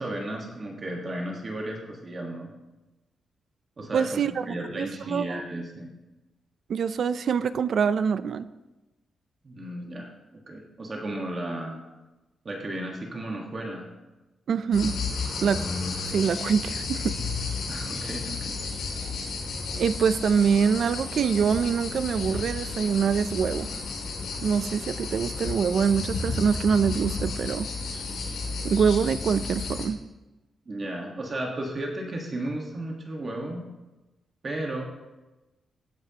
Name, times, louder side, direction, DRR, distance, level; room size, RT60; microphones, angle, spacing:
voice 1, 0.0-2.5 3.8-4.1 4.5-5.9 9.4-11.8 12.4-13.9 17.7-18.6 30.7-33.7 34.4-34.8, right 1 dB, 30° right, 0 dB, 1.5 m, -34 dB
voice 2, 3.9-5.4 6.7-8.5 14.5-15.0 15.4-15.7 16.1-17.2 19.7-23.7 24.4-27.7 28.6-30.0, right 6 dB, 55° right, 14 dB, 0.4 m, -25 dB
sound 1, 14.7-29.9, left 4 dB, 85° left, 2.6 m, -32 dB
16.5 x 9.3 x 2.9 m, 1.1 s
wide cardioid pair, 160°, 0 cm